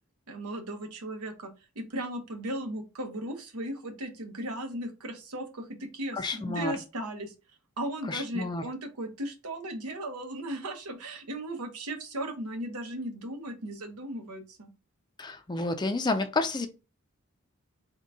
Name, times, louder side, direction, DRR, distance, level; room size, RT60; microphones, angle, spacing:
voice 1, 0.3-1.5 1.7-7.3 7.8-14.7, right 1 dB, 90° right, 0.9 m, -36 dB
voice 2, 6.1-6.7 8.1-8.6 15.2-16.7, left 2 dB, 20° left, 0.4 m, -30 dB
3.8 x 2.2 x 3.5 m
head